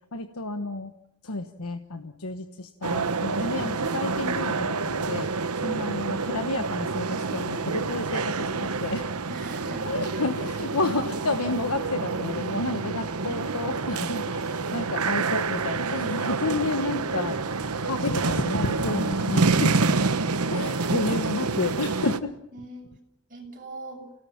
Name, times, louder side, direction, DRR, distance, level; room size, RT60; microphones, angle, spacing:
voice 1, 0.1-0.9 1.2-9.1 9.8-17.4 17.8-19.7 20.5-22.3, left 3 dB, 80° left, 7 dB, 1.3 m, -30 dB
sound 1, 2.8-22.2, right 4 dB, 80° right, 1.1 m, -28 dB
voice 2, 9.3-10.2 22.5-22.9 23.3-24.0, right 2 dB, 40° right, 1 dB, 7.0 m, -42 dB
28.5 x 18.0 x 7.4 m, 0.81 s
head